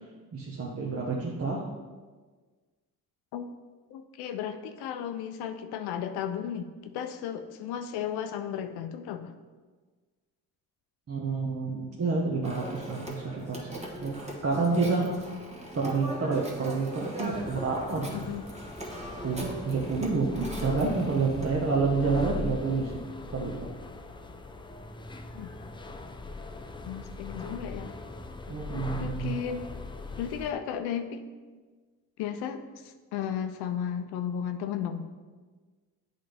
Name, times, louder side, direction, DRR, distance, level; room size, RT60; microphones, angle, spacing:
voice 1, 0.3-1.6 11.1-15.1 15.7-18.1 19.2-23.0 23.3-23.7 28.5-29.4, right 4 dB, 40° right, -3 dB, 1.0 m, -29 dB
voice 2, 3.9-9.3 18.1-18.4 25.3-25.5 26.9-27.9 28.7-29.7 30.2-31.3 32.2-35.1, left 8 dB, 85° left, 7 dB, 0.5 m, -34 dB
Telephone, 12.4-21.5, right 1 dB, 15° right, 1.2 m, -40 dB
sound 1, 17.3-30.5, left 3 dB, 15° left, 0.4 m, -40 dB
8.4 x 4.0 x 3.4 m, 1.4 s
cardioid pair, 80°, 38 cm